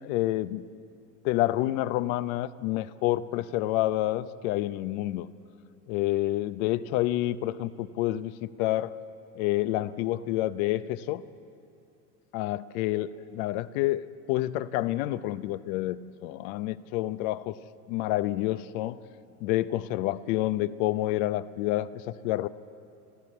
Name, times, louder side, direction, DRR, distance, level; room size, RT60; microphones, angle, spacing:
voice 1, 0.0-0.6 1.2-5.3 5.9-8.9 9.3-11.2 12.3-17.6 17.9-19.0 19.4-22.5, left 15 dB, 65° left, 14 dB, 0.8 m, -28 dB
24.5 x 13.5 x 8.5 m, 2.8 s
hypercardioid pair, 95°, 47 cm